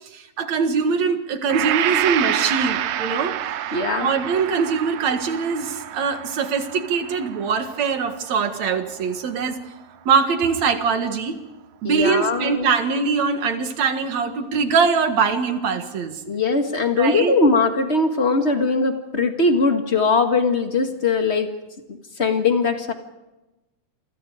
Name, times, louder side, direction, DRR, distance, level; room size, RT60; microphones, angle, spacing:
voice 1, 0.1-3.4 4.0-9.6 10.1-11.4 11.8-16.2 17.0-17.3, right 5 dB, 55° right, 7 dB, 2.8 m, -22 dB
Gong, 1.5-9.5, right 11 dB, 85° right, 1.3 m, -28 dB
voice 2, 3.7-4.1 11.8-12.7 16.3-21.5 22.2-22.9, left 3 dB, 30° left, 6 dB, 1.2 m, -20 dB
28.5 x 25.0 x 5.0 m, 1.0 s
omnidirectional pair, 4.0 m